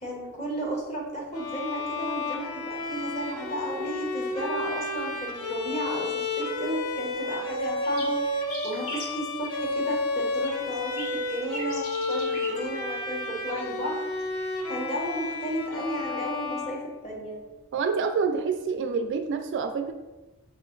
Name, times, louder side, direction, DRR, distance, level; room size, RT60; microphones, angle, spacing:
voice 1, 0.0-8.2 8.6-14.0 14.7-17.4, right 1 dB, 30° left, -2 dB, 1.0 m, -33 dB
Bowed string instrument, 1.3-17.4, left 2 dB, 85° left, 0.7 m, -31 dB
sound 1, 7.2-7.3 7.5-9.1 10.3-12.6 14.1-14.4, left 1 dB, 65° left, 1.0 m, -39 dB
voice 2, 17.7-19.9, right 5 dB, 55° right, 7 dB, 0.3 m, -27 dB
5.0 x 2.5 x 3.8 m, 1.1 s
head